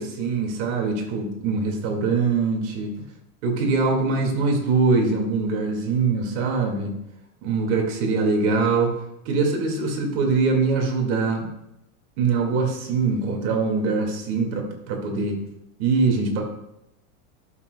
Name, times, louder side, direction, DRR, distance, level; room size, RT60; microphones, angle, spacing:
voice 1, 0.0-3.0 3.4-7.0 7.4-8.9 9.3-11.5 12.2-15.4 15.8-16.4, right 4 dB, 50° right, 2 dB, 2.1 m, -23 dB
12.0 x 7.1 x 2.3 m, 0.84 s
supercardioid pair, 155°, 43 cm